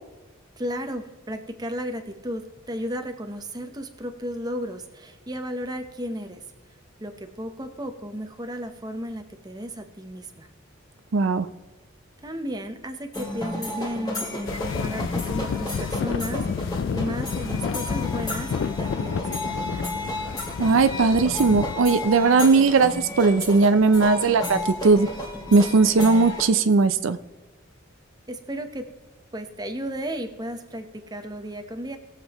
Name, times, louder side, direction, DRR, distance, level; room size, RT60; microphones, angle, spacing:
voice 1, 0.6-6.4 7.0-10.5 12.2-19.9 28.3-28.9 29.3-32.0, equal, 20° right, 7 dB, 0.8 m, -34 dB
voice 2, 11.1-11.5 20.6-25.1 25.5-27.2, right 4 dB, 70° right, 10 dB, 0.5 m, -18 dB
sound 1, 13.1-26.4, left 2 dB, 20° left, 2.2 m, -32 dB
sound 2, 14.5-21.7, left 6 dB, 65° left, 0.3 m, -30 dB
20.0 x 7.6 x 3.0 m, 1.2 s
head